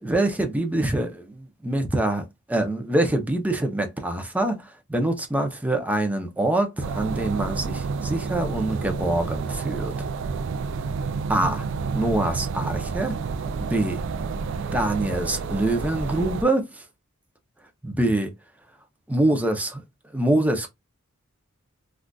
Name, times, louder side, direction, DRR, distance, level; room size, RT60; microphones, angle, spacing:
voice 1, 0.0-9.9 11.3-11.7 11.9-13.1 13.6-14.0 14.7-16.8 17.8-18.3 19.1-19.8 20.1-20.7, right 1 dB, 5° right, 0.5 m, -25 dB
sound 1, 6.8-16.4, right 5 dB, 60° right, 0.3 m, -29 dB
3.7 x 2.3 x 2.3 m
head